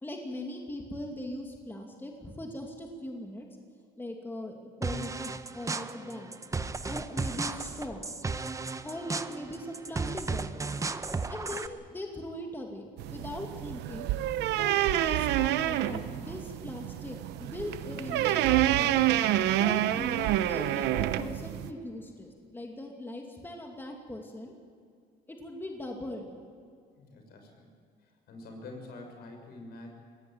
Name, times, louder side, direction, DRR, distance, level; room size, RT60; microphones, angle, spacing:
voice 1, 0.0-3.5 4.0-6.3 6.8-8.0 8.8-10.7 11.3-14.1 14.6-19.0 19.6-24.5 25.3-26.3, left 1 dB, 10° left, 2 dB, 2.5 m, -40 dB
sound 1, 4.8-11.7, right 4 dB, 20° right, 0.9 m, -35 dB
sound 2, 13.0-21.7, right 13 dB, 85° right, 0.9 m, -28 dB
voice 2, 27.0-27.7 28.0-29.9, left 2 dB, 70° left, 3 dB, 6.1 m, -46 dB
21.5 x 17.5 x 9.2 m, 2.1 s
cardioid pair, 110°, 17 cm